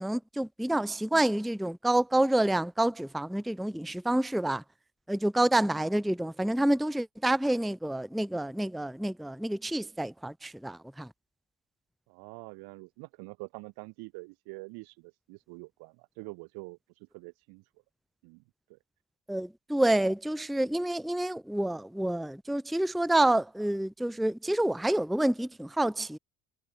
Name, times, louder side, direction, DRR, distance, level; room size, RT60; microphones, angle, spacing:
voice 1, 0.0-4.6 5.1-11.1 19.3-26.2, right 1 dB, ahead, 0.7 m, -28 dB
voice 2, 12.1-17.6 18.2-18.4 18.7-18.8, right 28 dB, 85° right, 6.9 m, -46 dB
supercardioid pair, 80°, 36 cm